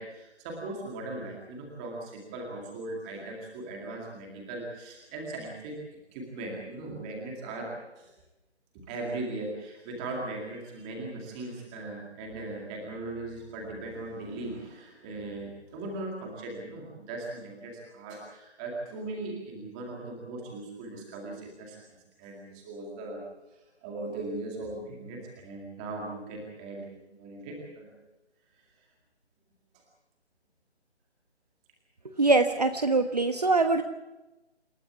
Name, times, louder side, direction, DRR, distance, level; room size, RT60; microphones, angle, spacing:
voice 1, 0.0-5.8 6.1-8.1 8.7-21.8 22.2-23.2 23.8-27.9 32.2-32.3, right 2 dB, 5° right, 0 dB, 2.2 m, -39 dB
voice 2, 32.2-33.8, right 3 dB, 35° right, 7 dB, 1.2 m, -23 dB
28.0 x 13.5 x 8.4 m, 1.0 s
figure-of-eight pair, 175°, 34 cm